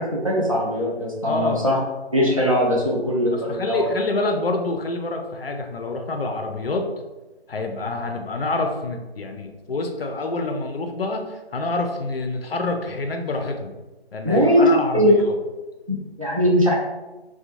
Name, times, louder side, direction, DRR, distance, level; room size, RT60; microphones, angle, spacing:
voice 1, 0.0-1.8 2.1-3.9 14.2-14.7 14.9-15.1 15.9-16.7, equal, 35° right, -4 dB, 0.4 m, -20 dB
voice 2, 1.2-1.7 3.5-6.8 7.5-13.7 14.1-15.4, left 2 dB, 65° left, 4 dB, 0.5 m, -27 dB
2.5 x 2.2 x 2.8 m, 1.1 s
figure-of-eight pair, 160°, 32 cm